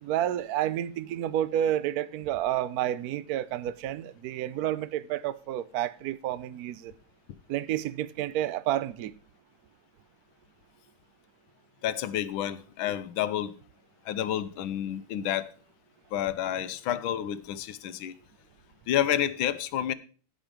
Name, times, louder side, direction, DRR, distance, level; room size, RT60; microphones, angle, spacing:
voice 1, 0.0-6.9 7.5-9.1, right 12 dB, 75° right, 0.8 m, -30 dB
voice 2, 11.8-13.5 14.1-15.5 16.1-18.1 18.9-19.9, left 11 dB, 75° left, 1.4 m, -29 dB
15.5 x 5.3 x 5.1 m
omnidirectional pair, 2.4 m